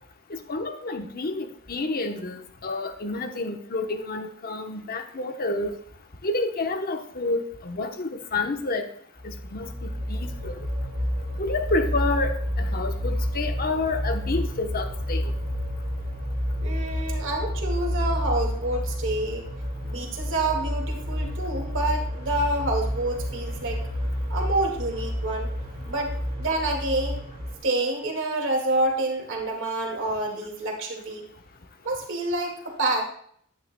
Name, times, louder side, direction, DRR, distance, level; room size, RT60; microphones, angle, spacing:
voice 1, 0.3-5.7 6.2-8.9 9.2-10.7 11.4-15.3, left 2 dB, 45° left, 6 dB, 0.9 m, -29 dB
sound 1, 9.2-27.5, equal, 45° right, 3.2 m, -30 dB
voice 2, 16.6-19.5 19.8-23.8 24.3-25.5 25.9-27.2 27.6-31.2 31.8-33.0, right 2 dB, 60° right, 1 dB, 2.1 m, -28 dB
11.5 x 9.3 x 2.2 m, 0.64 s
head